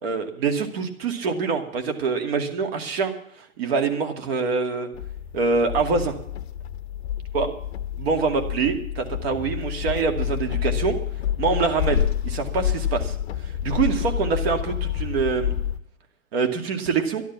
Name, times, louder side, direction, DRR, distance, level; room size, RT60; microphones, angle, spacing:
voice 1, 0.0-3.1 3.6-4.9 5.3-6.1 7.3-7.5 8.0-11.0 11.4-13.2 13.4-15.5 16.3-17.2, right 5 dB, 45° right, 5 dB, 2.3 m, -25 dB
sound 1, 4.9-15.8, left 10 dB, 50° left, 1.0 m, -28 dB
12.5 x 11.0 x 7.2 m, 0.66 s
hypercardioid pair, 140°, 42 cm